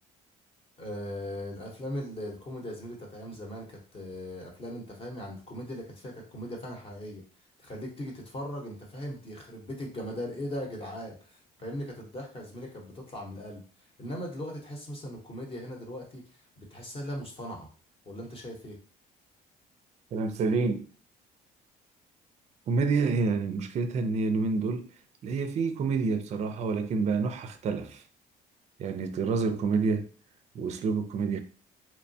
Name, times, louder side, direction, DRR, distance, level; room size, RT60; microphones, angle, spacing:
voice 1, 0.8-7.2 7.6-13.6 14.0-17.7 18.1-18.8, equal, 35° left, 0.8 m, -39 dB
voice 2, 20.1-20.9 22.7-24.9 25.2-28.0 28.8-30.1 30.5-31.4, right 4 dB, 40° right, 0.4 m, -28 dB
2.9 x 2.1 x 2.6 m
cardioid pair, 110°, 17 cm